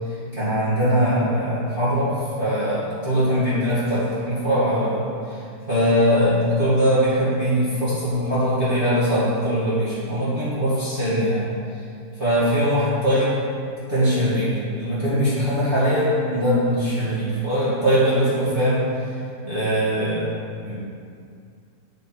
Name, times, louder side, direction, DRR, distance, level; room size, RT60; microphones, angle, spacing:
voice 1, 0.3-5.0 5.7-11.5 12.2-13.4 13.9-18.8 19.4-20.3 20.6-20.7, equal, 30° right, -12 dB, 2.1 m, -21 dB
7.4 x 6.3 x 4.5 m, 2.4 s
omnidirectional pair, 1.9 m